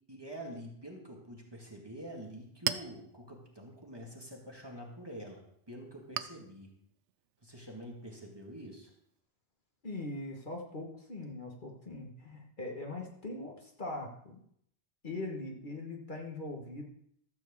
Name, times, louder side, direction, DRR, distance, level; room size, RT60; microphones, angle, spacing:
voice 1, 0.1-6.7 7.4-8.9, right 1 dB, 20° right, -1 dB, 1.9 m, -46 dB
Chink clink, 2.1-9.2, right 10 dB, 90° right, 0.9 m, -44 dB
voice 2, 9.8-14.4 15.0-16.8, left 2 dB, 45° left, 1 dB, 1.6 m, -41 dB
13.5 x 4.5 x 7.2 m, 0.69 s
omnidirectional pair, 1.2 m